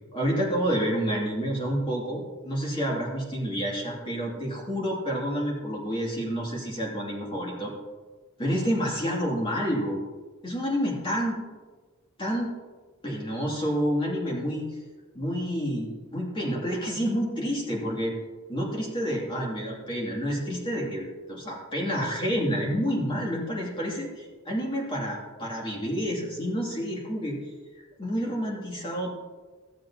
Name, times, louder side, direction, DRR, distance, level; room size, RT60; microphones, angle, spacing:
voice 1, 0.1-7.7 8.4-10.0 10.4-11.4 12.2-12.5 13.0-14.6 15.1-18.2 18.5-27.4 28.0-29.2, equal, 25° left, -3 dB, 2.5 m, -29 dB
15.0 x 7.5 x 2.9 m, 1.3 s
head